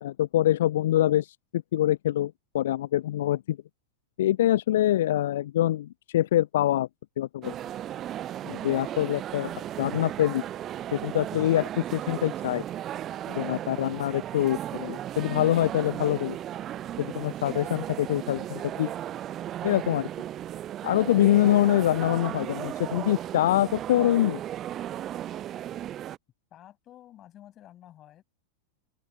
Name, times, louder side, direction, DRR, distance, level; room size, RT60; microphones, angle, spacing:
voice 1, 0.0-3.6 4.2-6.9 7.2-7.5 8.4-9.5 9.8-10.4 10.9-12.6 13.3-16.4 17.0-18.9 19.6-20.1 20.8-24.4, left 13 dB, 60° left, 0.4 m, -25 dB
sound 1, 7.4-26.2, right 11 dB, 30° right, 0.4 m, -35 dB
voice 2, 26.5-28.2, left 12 dB, 30° left, 7.3 m, -51 dB
open air
figure-of-eight pair, 90°, 0 cm